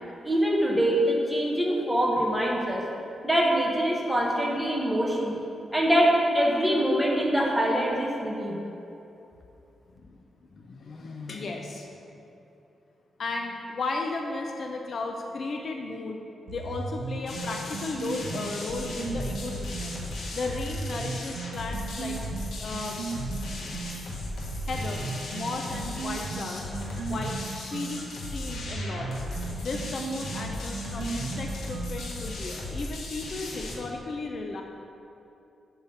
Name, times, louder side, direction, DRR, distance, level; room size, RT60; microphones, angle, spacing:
voice 1, 0.2-2.8 3.2-5.3 5.7-8.6, equal, 5° right, -2 dB, 1.0 m, -24 dB
voice 2, 10.0-12.1 13.2-16.2 16.5-20.0 20.3-22.2 22.6-23.1 24.7-25.0 25.3-26.7 27.1-27.4 27.7-29.3 29.6-34.6, left 3 dB, 45° left, 2 dB, 0.5 m, -35 dB
sound 1, 16.5-20.0 20.5-24.0 24.5-32.3, right 4 dB, 90° right, 0.6 m, -36 dB
sound 2, 17.3-33.8, left 2 dB, 75° left, 1.4 m, -36 dB
7.2 x 5.6 x 5.3 m, 2.8 s
wide cardioid pair, 170°, 0 cm